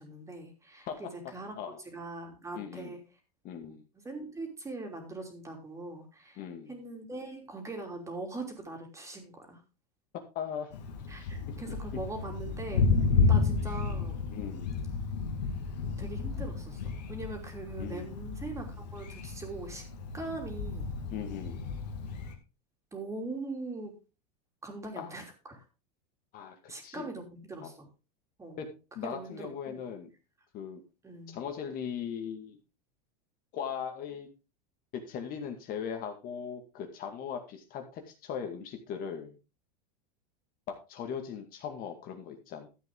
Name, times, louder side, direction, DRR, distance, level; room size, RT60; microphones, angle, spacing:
voice 1, 0.0-1.5 1.8-3.0 3.6-3.8 4.0-6.4 6.7-9.6 11.1-12.9 13.2-14.2 16.0-19.9 20.1-20.9 22.9-23.9 24.6-25.6 26.7-27.9 28.4-28.6 29.0-29.8 31.0-31.4, right 2 dB, 15° right, 3 dB, 3.1 m, -41 dB
voice 2, 2.5-3.0 3.4-3.9 6.4-6.7 10.3-10.7 11.2-11.3 13.2-13.4 14.3-14.8 17.8-18.2 21.1-21.7 25.0-25.1 26.3-27.1 27.6-27.7 28.6-28.7 29.0-30.1 30.5-30.8 31.3-32.6 33.5-34.3 34.9-39.4 40.9-42.7, left 7 dB, 45° left, 5 dB, 2.2 m, -39 dB
Thunder, 10.7-22.4, left 4 dB, 90° left, 2.3 m, -32 dB
13.0 x 8.2 x 3.7 m, 0.30 s
supercardioid pair, 125°, 21 cm